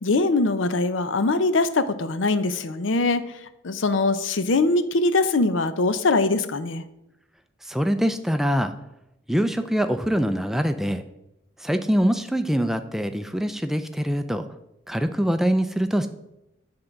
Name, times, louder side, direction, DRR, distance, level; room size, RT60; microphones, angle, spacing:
voice 1, 0.0-3.3 3.6-6.8, left 3 dB, 85° left, 12 dB, 0.6 m, -22 dB
voice 2, 7.6-8.7 9.3-11.0 11.6-14.4 14.9-16.1, equal, ahead, 8 dB, 0.3 m, -24 dB
9.9 x 3.8 x 5.8 m, 0.88 s
head